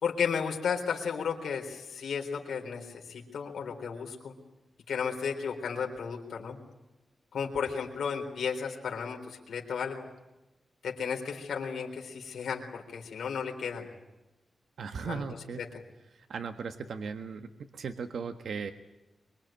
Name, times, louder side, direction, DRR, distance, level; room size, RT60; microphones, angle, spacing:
voice 1, 0.0-4.3 4.9-6.6 7.3-10.1 10.8-13.9 15.0-15.2 15.6-15.7, left 6 dB, 85° left, 1 dB, 4.0 m, -34 dB
voice 2, 14.8-15.6 16.1-18.7, right 5 dB, 80° right, 7 dB, 1.5 m, -37 dB
24.0 x 23.5 x 9.0 m, 1.0 s
cardioid pair, 90°, 0 cm